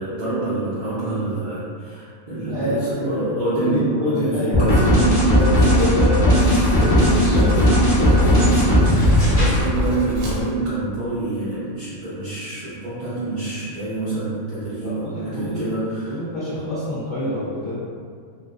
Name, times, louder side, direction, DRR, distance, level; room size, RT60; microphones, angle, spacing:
voice 1, 0.0-5.2 6.5-6.7 7.0-7.1 8.5-16.2, right 2 dB, 55° right, -13 dB, 0.5 m, -27 dB
voice 2, 2.5-3.3 3.6-4.8 5.3-8.5 14.7-15.7 16.1-17.8, left 1 dB, 60° left, -12 dB, 0.5 m, -26 dB
sound 1, 4.5-9.6, equal, 20° left, 1.1 m, -16 dB
Writing, 5.3-10.5, left 1 dB, 80° right, 1.0 m, -30 dB
2.3 x 2.3 x 2.3 m, 2.1 s
omnidirectional pair, 1.5 m